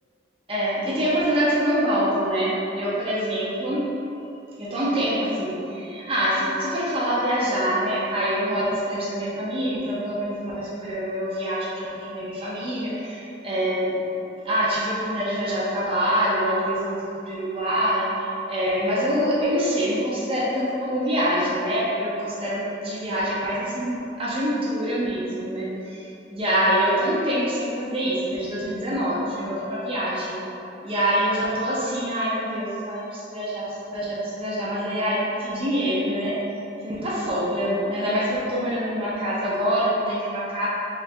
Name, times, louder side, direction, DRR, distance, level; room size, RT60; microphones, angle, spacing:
voice 1, 0.5-3.9 4.6-14.0 14.4-30.4 30.8-36.4 36.8-40.7, equal, 30° right, -7 dB, 0.6 m, -25 dB
4.2 x 3.7 x 2.2 m, 2.8 s
head